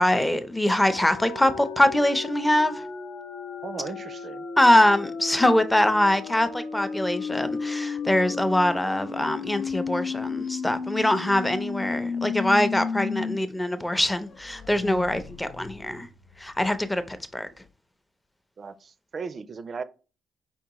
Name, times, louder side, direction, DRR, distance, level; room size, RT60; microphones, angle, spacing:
voice 1, 0.0-2.8 4.6-16.1 16.4-17.5, left 1 dB, 10° left, 0.5 m, -23 dB
sound 1, 0.9-13.4 13.7-13.8 14.2-16.9, left 5 dB, 70° left, 0.6 m, -34 dB
voice 2, 3.6-4.5 18.6-19.8, right 5 dB, 45° right, 0.4 m, -36 dB
4.6 x 3.5 x 2.9 m
cardioid pair, 100°, 0 cm